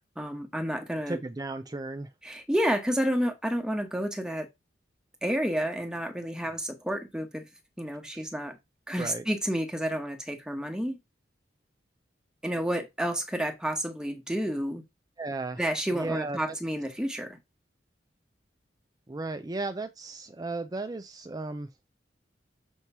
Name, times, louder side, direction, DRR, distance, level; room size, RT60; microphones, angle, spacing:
voice 1, 0.2-1.2 2.2-4.5 5.2-7.4 7.8-8.6 8.9-11.0 12.4-14.8 15.6-17.4, equal, 5° right, 1.1 m, -30 dB
voice 2, 1.1-2.1 8.1-8.2 9.0-9.2 15.2-15.6 15.9-16.6 19.1-21.7, right 2 dB, 20° right, 0.5 m, -35 dB
7.1 x 3.0 x 5.5 m
head